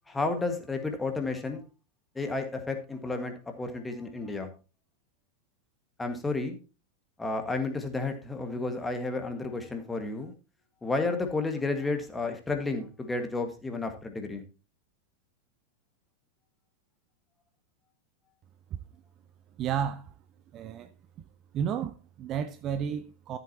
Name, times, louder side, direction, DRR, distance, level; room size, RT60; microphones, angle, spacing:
voice 1, 0.1-1.7 2.1-4.5 6.0-6.6 7.2-10.3 10.8-14.4, left 3 dB, 10° left, 1.7 m, -32 dB
voice 2, 19.6-20.1 20.5-20.9 21.5-23.4, right 8 dB, 35° right, 0.7 m, -32 dB
13.5 x 7.9 x 2.9 m
figure-of-eight pair, 90°, 0 cm